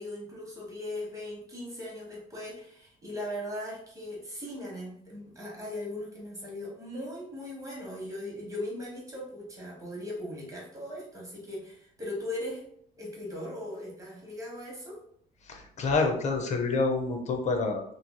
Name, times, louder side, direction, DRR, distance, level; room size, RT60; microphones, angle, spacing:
voice 1, 0.0-12.6 13.0-15.0, left 1 dB, 20° right, -3 dB, 1.0 m, -39 dB
voice 2, 15.4-17.8, left 3 dB, 45° left, 3 dB, 0.6 m, -27 dB
3.0 x 2.6 x 2.2 m, 0.66 s
cardioid pair, 110°, 17 cm